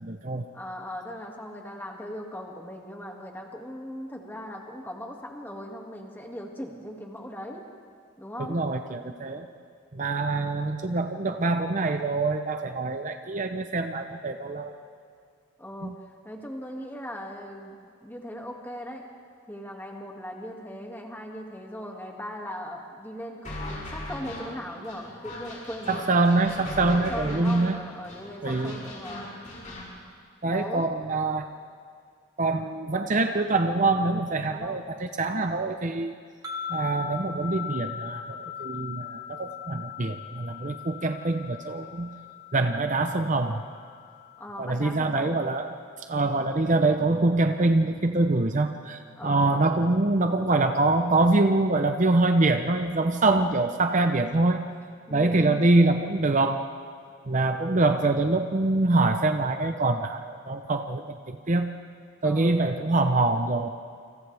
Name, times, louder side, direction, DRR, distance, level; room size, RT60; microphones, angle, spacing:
voice 1, 0.0-0.4 8.4-9.5 9.9-14.7 15.8-15.9 25.9-27.8 28.4-28.8 30.4-31.5 32.4-36.1 36.7-42.1 42.5-43.6 44.6-45.7 46.1-54.6 55.1-56.6 57.3-61.7 62.2-63.7, right 2 dB, 40° right, 6 dB, 0.7 m, -24 dB
voice 2, 0.5-7.6 8.2-8.6 9.2-9.4 15.6-16.0 16.2-19.1 19.5-23.5 23.9-26.0 26.9-29.3 30.5-30.9 34.5-34.8 44.4-45.4 49.1-49.7 55.1-55.6 62.2-62.6, equal, 10° left, 0 dB, 2.2 m, -39 dB
sound 1, 23.4-29.9, left 1 dB, 40° left, 6.2 m, -38 dB
sound 2, 36.4-45.7, left 8 dB, 20° right, 2.0 m, -40 dB
29.0 x 26.5 x 3.5 m, 2.2 s
head